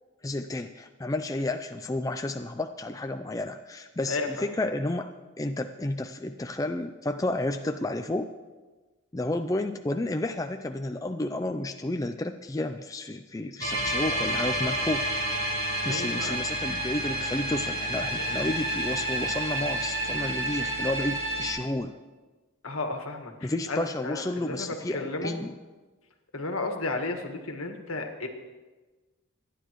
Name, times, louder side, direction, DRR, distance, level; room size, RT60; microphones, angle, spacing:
voice 1, 0.2-5.1 5.4-8.3 9.1-15.0 15.8-21.9 23.4-25.6, left 2 dB, 15° left, 7 dB, 0.4 m, -31 dB
sound 1, 13.6-21.5, right 1 dB, 65° right, 4.7 m, -29 dB
voice 2, 15.9-16.4 22.6-25.3 26.3-28.3, left 3 dB, 80° left, 3 dB, 1.7 m, -33 dB
25.5 x 10.0 x 3.1 m, 1.3 s
head